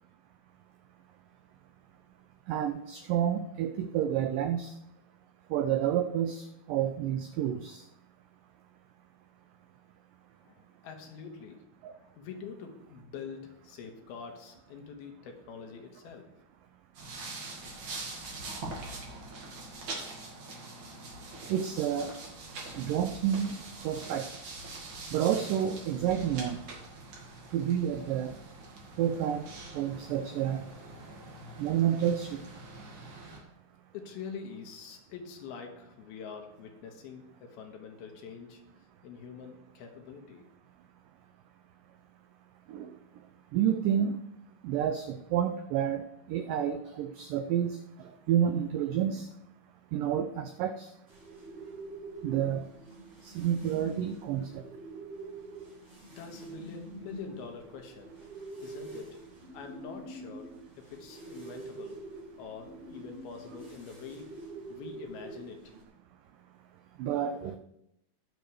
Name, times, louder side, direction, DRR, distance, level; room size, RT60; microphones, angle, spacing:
voice 1, 2.5-4.7 5.5-7.8 11.8-11.9 21.5-22.1 22.8-24.3 25.1-26.6 27.5-28.4 29.0-29.5 29.7-30.6 31.6-32.4 42.7-42.9 43.5-44.2 44.6-47.8 48.3-49.3 49.9-50.9 52.2-52.7 53.2-54.6 67.0-67.6, right 9 dB, 85° right, 8 dB, 1.9 m, -29 dB
voice 2, 10.4-16.3 33.9-38.6 39.0-40.4 56.2-58.2 58.6-59.2 59.5-62.0 62.4-64.4 64.7-65.7, left 6 dB, 80° left, 3 dB, 3.1 m, -45 dB
sound 1, 17.0-33.4, right 2 dB, 50° right, 3.0 m, -44 dB
sound 2, 51.1-65.8, right 2 dB, 15° right, 3.9 m, -46 dB
20.5 x 7.0 x 3.4 m, 0.80 s
omnidirectional pair, 4.5 m